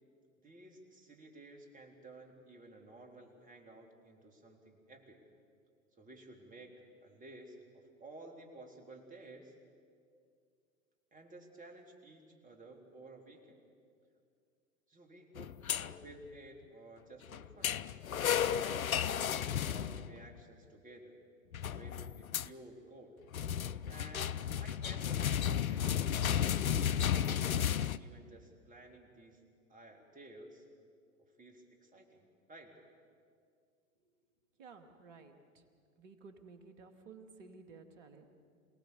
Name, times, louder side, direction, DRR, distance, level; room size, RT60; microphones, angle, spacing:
voice 1, 0.4-5.2 5.9-9.5 11.1-13.7 14.9-17.8 18.4-21.2 21.7-23.2 23.9-27.6 28.0-29.4 29.7-30.7 31.4-32.2 32.5-32.7, right 2 dB, 20° right, 2 dB, 3.5 m, -54 dB
sound 1, 15.4-16.1 17.3-20.3 21.5-22.5 23.3-28.0, left 9 dB, 85° left, 0.6 m, -33 dB
voice 2, 34.6-35.6 36.0-38.3, right 4 dB, 60° right, 6 dB, 2.5 m, -55 dB
27.5 x 18.0 x 7.0 m, 2.2 s
figure-of-eight pair, 95°, 41 cm